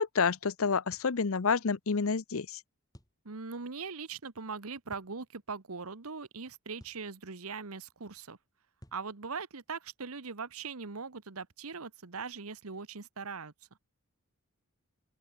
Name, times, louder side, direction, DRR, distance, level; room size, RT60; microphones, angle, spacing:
voice 1, 0.0-2.6, left 5 dB, 75° left, 0.7 m, -29 dB
sound 1, 0.9-1.1 2.9-3.2 4.9-5.1 6.8-7.1 8.8-9.1, equal, 15° left, 7.4 m, -55 dB
voice 2, 3.2-8.4 8.9-13.5, right 5 dB, 80° right, 1.2 m, -41 dB
open air
head